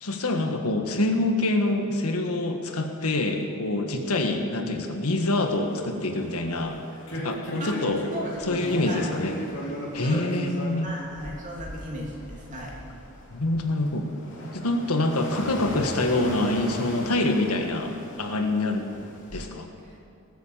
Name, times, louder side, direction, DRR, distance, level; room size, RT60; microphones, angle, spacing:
voice 1, 0.0-6.8 7.1-8.0 8.4-9.4 9.9-10.9 13.3-14.1 14.5-18.8 19.3-19.7, left 2 dB, 90° left, 4 dB, 1.6 m, -26 dB
sound 1, 5.2-19.4, equal, 60° left, 3.0 m, -38 dB
voice 2, 8.1-9.1 10.0-10.5 10.8-12.8 19.8-20.0, equal, 35° right, -3 dB, 3.0 m, -36 dB
19.0 x 7.9 x 7.3 m, 2.6 s
head